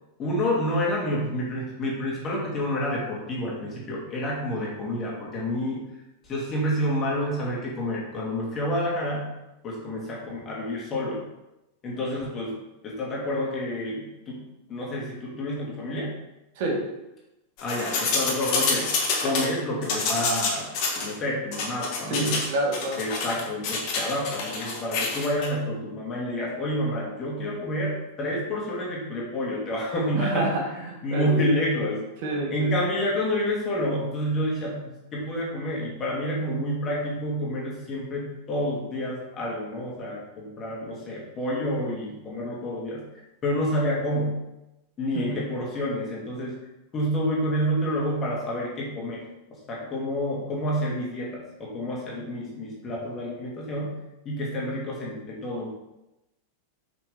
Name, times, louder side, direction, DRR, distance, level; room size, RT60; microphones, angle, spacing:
voice 1, 0.2-5.8 6.2-9.3 9.6-11.2 11.8-12.6 12.8-14.4 14.7-16.2 17.6-18.9 19.2-20.7 20.9-22.5 23.0-30.5 31.0-32.0 32.5-43.1 43.4-44.4 45.0-46.6 46.9-53.9 54.2-55.7, equal, 25° left, -4 dB, 2.3 m, -29 dB
sound 1, 17.6-19.5 19.8-21.1 21.5-22.5 22.7-25.5, left 4 dB, 45° left, 1.5 m, -27 dB
voice 2, 22.1-23.0 30.1-31.4 32.2-32.7 45.1-45.4, right 2 dB, 50° right, 1 dB, 1.7 m, -28 dB
6.2 x 6.0 x 3.5 m, 0.93 s
figure-of-eight pair, 90°, 0 cm